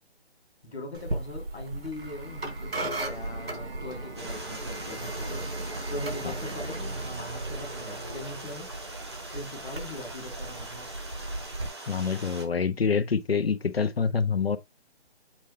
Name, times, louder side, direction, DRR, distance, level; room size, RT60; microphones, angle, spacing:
voice 1, 0.6-5.6 5.9-8.7 9.3-10.9, left 2 dB, 5° right, 0.9 m, -41 dB
sound 1, 0.9-11.7, right 2 dB, 65° right, 2.8 m, -36 dB
Stream, 4.2-12.5, right 2 dB, 25° right, 1.2 m, -42 dB
voice 2, 11.9-14.6, left 5 dB, 65° left, 1.1 m, -26 dB
7.4 x 4.2 x 3.7 m
hypercardioid pair, 180°, 32 cm